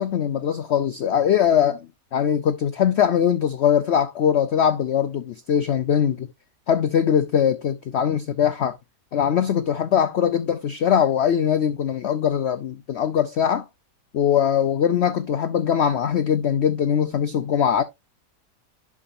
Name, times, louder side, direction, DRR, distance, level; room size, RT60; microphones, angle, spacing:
voice 1, 0.0-6.3 6.7-8.8 9.1-13.6 14.1-17.8, left 8 dB, 75° left, 0.6 m, -21 dB
11.0 x 4.8 x 2.5 m
omnidirectional pair, 1.8 m